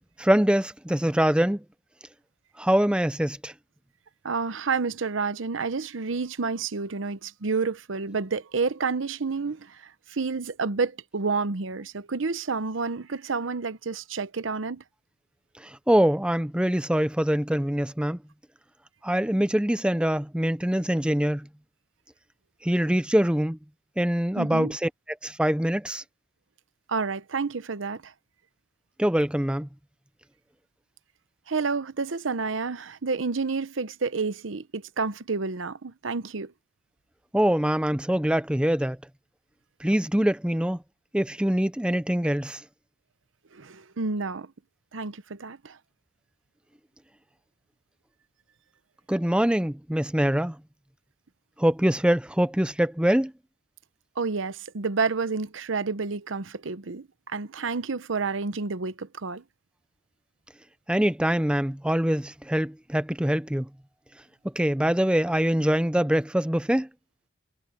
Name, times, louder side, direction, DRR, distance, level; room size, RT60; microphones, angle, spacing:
voice 1, 0.2-1.6 2.6-3.5 15.6-18.2 19.0-21.5 22.6-23.6 24.0-24.9 25.2-26.0 29.0-29.7 37.3-39.0 39.8-40.8 41.1-42.6 49.1-50.6 51.6-53.3 60.9-63.7 64.6-66.9, equal, 5° right, 0.5 m, -24 dB
voice 2, 4.2-14.8 24.4-24.7 26.9-28.1 31.5-36.5 43.5-44.5 44.9-45.8 54.2-59.4, right 4 dB, 90° right, 0.8 m, -29 dB
head